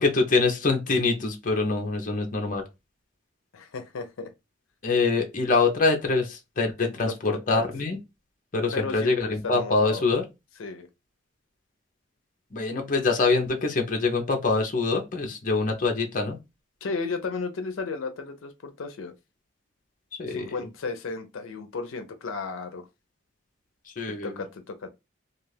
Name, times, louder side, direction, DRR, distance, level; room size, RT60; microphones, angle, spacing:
voice 1, 0.0-2.6 4.8-8.0 8.5-10.2 12.5-16.4 20.2-20.5 24.0-24.3, left 3 dB, 40° left, 0.6 m, -24 dB
voice 2, 3.5-4.3 6.8-7.7 8.7-10.1 10.6-10.9 16.8-19.1 20.3-22.9 24.2-24.9, left 4 dB, 85° left, 0.5 m, -34 dB
2.4 x 2.3 x 3.2 m
head